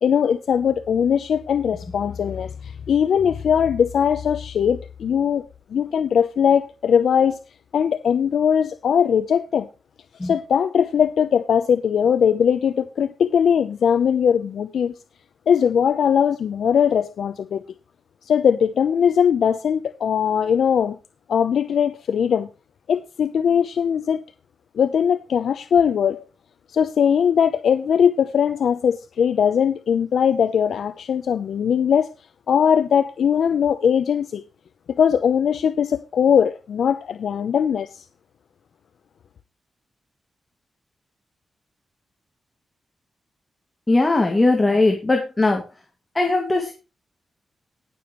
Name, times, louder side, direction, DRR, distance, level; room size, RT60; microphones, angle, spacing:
voice 1, 0.0-7.4 7.7-9.7 10.2-14.9 15.5-17.6 18.2-21.0 21.3-22.5 22.9-24.2 24.7-26.2 26.7-32.1 32.5-34.4 34.9-38.0, left 7 dB, 80° left, 0.7 m, -20 dB
voice 2, 43.9-45.6 46.2-46.7, left 2 dB, 20° left, 2.1 m, -19 dB
19.5 x 7.0 x 3.1 m
wide cardioid pair, 140°, 0 cm